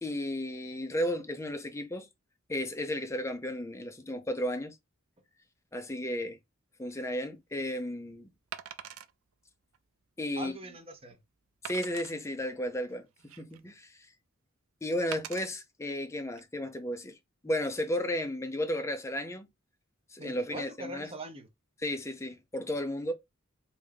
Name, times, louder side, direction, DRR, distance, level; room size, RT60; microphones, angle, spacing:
voice 1, 0.0-2.1 2.5-4.8 5.7-6.4 6.8-8.3 10.2-10.5 11.6-13.1 13.4-14.0 14.8-17.2 17.4-19.5 20.1-21.1 21.8-23.1, left 1 dB, 15° left, 0.5 m, -33 dB
Wood, 6.9-7.1 8.5-9.1 9.7-9.8 10.3-10.4 11.6-12.1 12.9-13.7 15.1-15.5 16.2-16.4, right 10 dB, 75° right, 0.4 m, -43 dB
voice 2, 10.4-11.2 20.2-21.5, right 1 dB, 25° right, 0.7 m, -42 dB
3.4 x 2.6 x 3.4 m
head